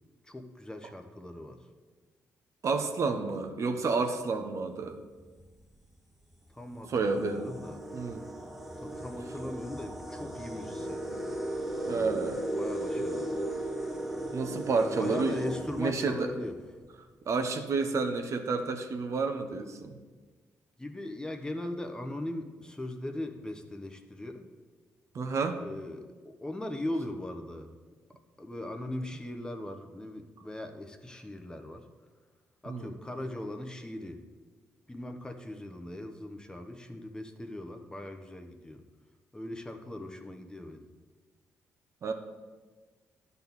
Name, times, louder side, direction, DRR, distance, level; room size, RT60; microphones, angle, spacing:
voice 1, 0.2-1.6 6.5-7.8 8.8-11.1 11.8-12.2 12.5-13.4 14.8-16.6 20.8-24.4 25.6-27.7 28.4-31.8 32.6-34.2 34.9-38.8 39.3-40.8, left 1 dB, 10° left, 5 dB, 1.0 m, -39 dB
voice 2, 2.6-5.0 6.9-7.5 7.9-8.2 11.9-12.4 14.3-15.3 15.8-16.3 17.3-19.9 25.1-25.6 32.7-32.9 42.0-42.1, right 4 dB, 55° right, 6 dB, 0.8 m, -30 dB
sound 1, 5.2-5.5 6.3-6.4 6.8-16.6, right 1 dB, 5° right, 1.3 m, -36 dB
10.5 x 4.1 x 7.1 m, 1.4 s
supercardioid pair, 65°, 6 cm